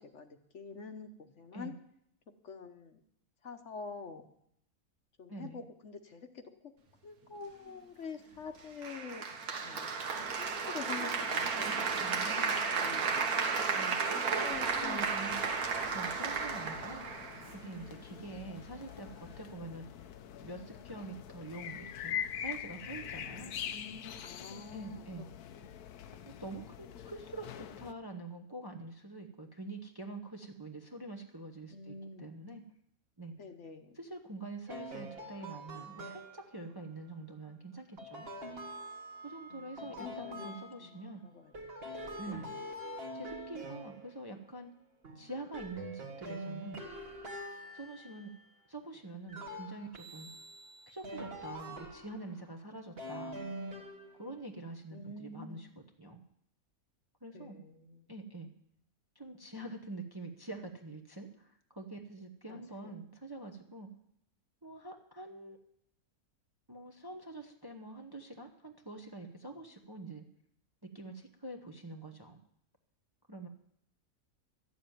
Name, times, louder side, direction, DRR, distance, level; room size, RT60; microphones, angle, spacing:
voice 1, 0.0-1.7 2.4-3.0 3.4-4.3 5.2-6.7 7.0-9.3 9.6-11.9 12.4-13.5 14.1-15.3 18.1-18.3 23.3-25.2 25.5-25.8 31.7-32.3 33.4-34.0 39.5-41.0 41.2-41.5 42.2-42.4 54.9-55.7 57.3-58.1 62.5-62.6, left 5 dB, 55° left, 7 dB, 1.2 m, -47 dB
voice 2, 5.3-5.6 11.9-12.5 13.4-14.5 14.7-15.4 15.9-20.1 20.4-23.6 24.4-25.3 26.1-32.6 33.2-33.3 33.9-38.3 39.2-41.2 42.2-42.5 43.1-44.7 45.1-46.8 47.7-48.3 48.7-50.3 50.9-53.4 54.2-55.7 56.0-56.2 57.2-57.6 58.1-58.5 59.1-63.9 64.6-65.6 66.7-70.2 70.8-72.4 73.3-73.5, right 2 dB, 20° right, 3 dB, 0.8 m, -45 dB
Applause, 8.8-17.8, right 5 dB, 80° right, 1.7 m, -33 dB
sound 1, 15.3-27.9, left 9 dB, 85° left, 1.2 m, -44 dB
sound 2, 34.7-36.6 38.0-41.1 41.5-44.6 45.0-48.6 49.3-52.4 53.0-54.4, equal, 40° right, 1.6 m, -45 dB
13.0 x 7.2 x 9.1 m, 0.73 s
omnidirectional pair, 1.6 m